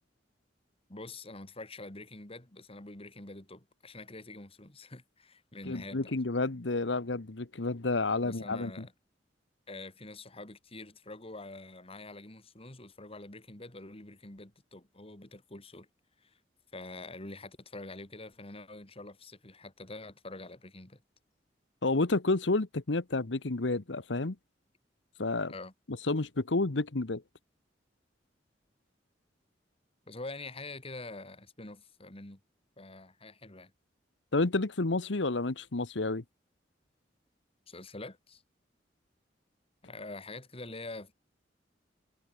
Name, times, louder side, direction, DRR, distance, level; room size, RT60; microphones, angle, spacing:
voice 1, 0.9-6.1 8.2-8.9 9.7-15.9 16.2-16.3 16.7-21.0 25.5-25.7 30.1-32.4 32.8-33.7 37.7-38.4 39.8-41.1, left 2 dB, 35° left, 3.0 m, -46 dB
voice 2, 5.7-8.7 21.8-24.3 25.2-25.5 26.1-27.2 34.3-36.2, left 2 dB, 90° left, 1.2 m, -30 dB
head